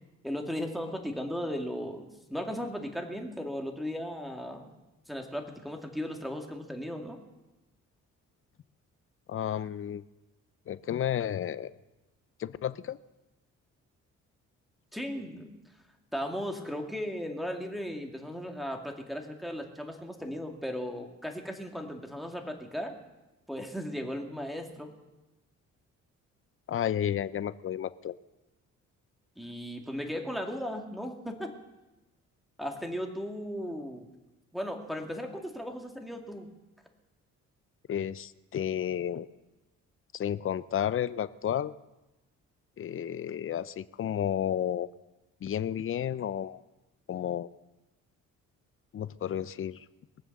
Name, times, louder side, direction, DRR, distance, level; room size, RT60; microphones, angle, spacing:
voice 1, 0.2-4.8 5.1-7.2 14.9-15.5 16.1-23.0 23.5-24.9 29.4-31.5 32.6-34.1 34.5-36.5, equal, ahead, 3 dB, 2.2 m, -36 dB
voice 2, 9.3-10.0 10.7-11.7 12.4-13.0 26.7-28.1 37.9-39.3 40.1-41.7 42.8-44.9 45.4-46.6 47.1-47.5 48.9-49.8, left 10 dB, 45° left, 16 dB, 0.6 m, -32 dB
22.0 x 7.4 x 6.6 m, 1.0 s
cardioid pair, 90°, 30 cm